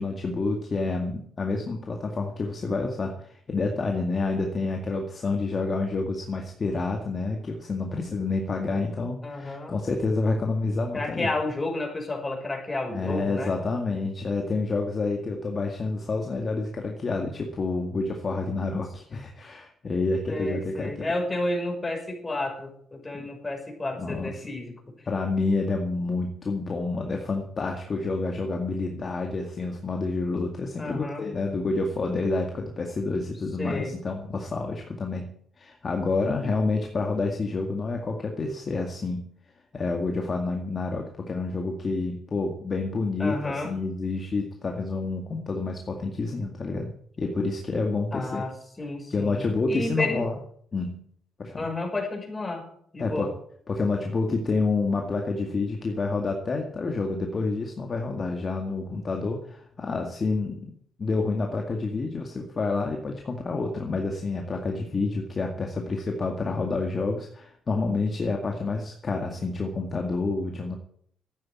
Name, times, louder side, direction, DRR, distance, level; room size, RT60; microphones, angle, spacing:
voice 1, 0.0-11.3 12.9-21.1 23.1-23.3 24.0-24.3 25.1-39.3 39.7-46.9 47.2-48.4 49.1-50.4 50.7-51.0 51.4-51.7 53.0-53.4 53.7-60.7 61.0-70.8, left 3 dB, 40° left, 2 dB, 2.0 m, -28 dB
voice 2, 9.2-9.8 10.9-13.5 20.3-24.7 25.0-25.1 30.8-31.2 33.6-33.9 43.2-43.8 48.1-48.5 48.8-49.4 49.7-50.3 51.6-52.7 52.9-53.3, left 2 dB, 20° left, 2 dB, 5.6 m, -31 dB
13.0 x 9.3 x 8.7 m, 0.64 s
cardioid pair, 90°, 0 cm